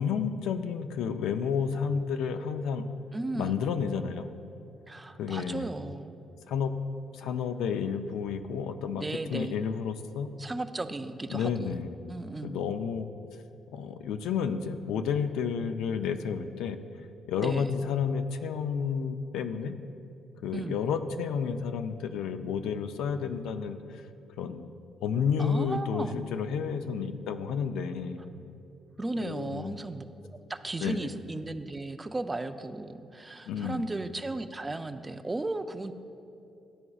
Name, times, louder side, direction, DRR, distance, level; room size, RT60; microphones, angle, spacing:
voice 1, 0.0-2.9 3.3-4.3 5.2-5.7 6.5-6.7 7.1-10.3 11.3-12.0 12.4-13.1 13.7-16.8 17.3-19.7 20.4-24.0 24.4-24.7 25.0-28.2 29.2-29.8 30.8-31.1 33.5-33.9, left 6 dB, 90° left, 8 dB, 0.3 m, -31 dB
voice 2, 3.1-3.6 4.9-6.2 8.9-9.6 10.4-12.6 17.4-17.8 20.5-20.8 25.4-26.2 28.4-28.5 29.0-30.0 30.5-35.9, right 2 dB, 20° right, 9 dB, 0.3 m, -35 dB
12.5 x 4.8 x 2.3 m, 2.7 s
cardioid pair, 90°, 0 cm